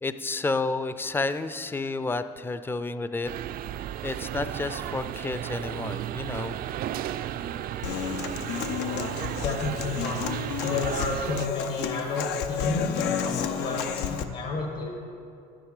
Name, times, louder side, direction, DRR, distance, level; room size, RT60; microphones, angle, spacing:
voice 1, 0.0-3.3 4.0-6.6, left 3 dB, 15° left, 12 dB, 0.4 m, -30 dB
sound 1, 3.2-11.5, right 11 dB, 60° right, 0.4 m, -34 dB
Human voice / Acoustic guitar, 7.8-14.2, left 8 dB, 90° left, 0.7 m, -31 dB
voice 2, 9.4-10.2 10.6-14.9, left 3 dB, 70° left, 0 dB, 1.6 m, -31 dB
10.5 x 9.8 x 4.9 m, 2.5 s
cardioid pair, 110°, 17 cm